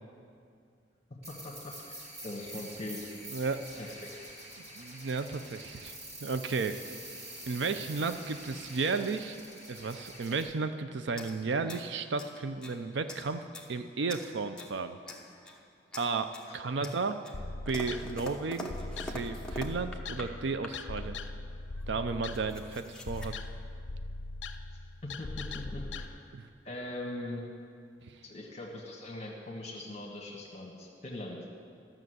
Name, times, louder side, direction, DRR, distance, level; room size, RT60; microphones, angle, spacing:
sound 1, 1.2-10.4, right 1 dB, 35° right, 2.2 m, -46 dB
voice 1, 1.3-2.0 2.2-3.0 3.8-4.1 16.5-16.6 25.0-26.1 26.6-27.5 28.2-31.4, left 1 dB, 35° left, -1 dB, 1.3 m, -41 dB
voice 2, 3.3-3.6 4.8-5.9 6.2-6.8 7.5-9.4 9.7-13.4 13.7-15.0 16.0-17.2 17.7-18.7 19.0-21.2 21.9-23.3 26.3-26.4 28.1-28.2, right 4 dB, 70° right, 9 dB, 0.5 m, -33 dB
sound 2, 11.2-12.8 13.1-13.7 14.1-14.8 15.1-15.6 15.9-16.5 16.8-20.3 20.6-21.0 21.8-21.9 22.1-23.3, left 1 dB, 5° left, 0.9 m, -45 dB
sound 3, 17.3-26.1, left 3 dB, 70° left, 0.5 m, -40 dB
13.5 x 6.3 x 7.8 m, 2.3 s
head